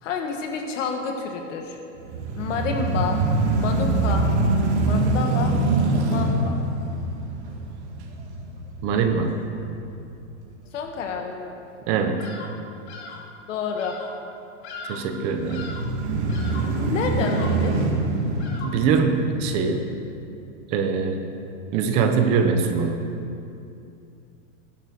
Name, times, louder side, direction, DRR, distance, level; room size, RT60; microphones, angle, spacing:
voice 1, 0.0-1.8 2.4-3.2 3.6-4.3 4.8-5.5 6.0-6.6 10.7-11.5 13.5-14.0 16.8-17.8, left 5 dB, 75° left, 3 dB, 1.7 m, -29 dB
sound 1, 2.0-10.1 10.6-10.7 15.2-19.7, right 2 dB, 60° right, 2.1 m, -24 dB
voice 2, 8.8-9.3 11.9-12.2 14.8-15.6 18.6-19.8 20.7-21.2 21.7-23.0, right 5 dB, 15° right, 5 dB, 0.4 m, -22 dB
Bird vocalization bird call bird song, 12.2-12.6 12.9-13.3 13.7-14.2 14.6-15.2 15.5-16.0 16.3-16.8 17.2-17.7 18.4-18.9, left 3 dB, 55° left, 1.9 m, -39 dB
18.0 x 10.5 x 4.1 m, 2.6 s
supercardioid pair, 170°, 38 cm